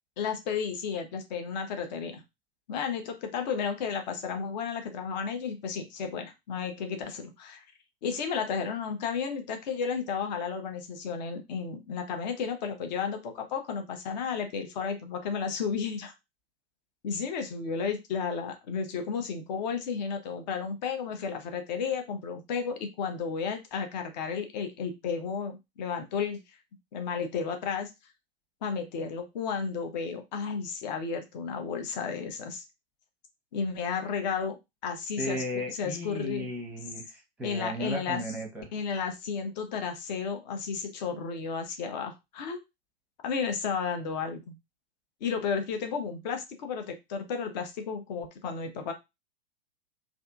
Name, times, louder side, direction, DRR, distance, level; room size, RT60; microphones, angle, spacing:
voice 1, 0.2-2.2 2.7-7.6 8.0-16.1 17.0-26.4 26.9-27.9 28.6-32.6 33.5-34.6 34.8-35.4 35.7-36.5 37.4-38.2 38.7-42.6 43.2-44.5 45.2-48.9, left 6 dB, 45° left, 6 dB, 0.7 m, -33 dB
voice 2, 35.2-38.7, equal, 5° right, 1 dB, 0.8 m, -35 dB
2.6 x 2.5 x 2.4 m, 0.22 s
figure-of-eight pair, 105°, 31 cm